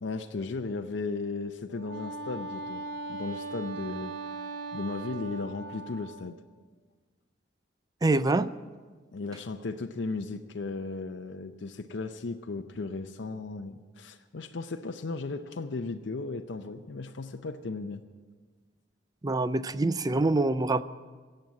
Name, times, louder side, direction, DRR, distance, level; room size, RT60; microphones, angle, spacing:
voice 1, 0.0-2.8 3.1-4.1 4.7-6.4 9.1-18.0, left 3 dB, 70° left, 6 dB, 0.6 m, -36 dB
Wind instrument woodwind instrument, 1.7-6.4, right 3 dB, 75° right, 1.2 m, -39 dB
voice 2, 8.0-8.5 19.2-20.8, right 2 dB, 20° right, 15 dB, 0.4 m, -25 dB
16.5 x 7.8 x 8.6 m, 1.4 s
head